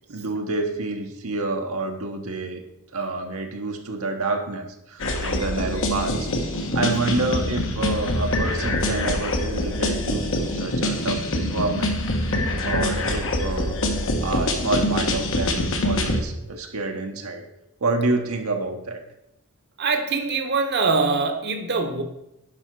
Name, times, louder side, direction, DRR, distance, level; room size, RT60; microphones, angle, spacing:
voice 1, 0.1-2.6 2.9-6.3 6.7-12.3 12.6-17.4 17.8-19.0, right 3 dB, 70° right, 3 dB, 1.2 m, -28 dB
sound 1, 5.0-16.2, left 1 dB, 65° left, 1.3 m, -25 dB
voice 2, 19.8-22.0, right 4 dB, 50° right, 5 dB, 1.2 m, -23 dB
10.5 x 5.6 x 4.7 m, 0.86 s
head